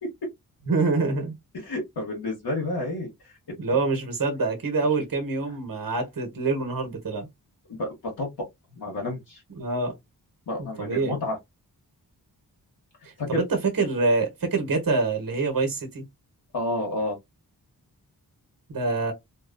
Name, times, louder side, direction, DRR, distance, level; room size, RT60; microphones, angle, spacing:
voice 1, 0.7-1.3 3.6-7.3 9.6-9.9 10.6-11.2 13.3-16.0 18.7-19.1, right 3 dB, 55° right, 1.2 m, -25 dB
voice 2, 1.6-3.3 7.8-8.3 8.7-9.4 10.5-11.4 13.2-13.4 16.5-17.2, left 2 dB, 65° left, 1.1 m, -30 dB
2.6 x 2.3 x 2.4 m
cardioid pair, 45°, 40 cm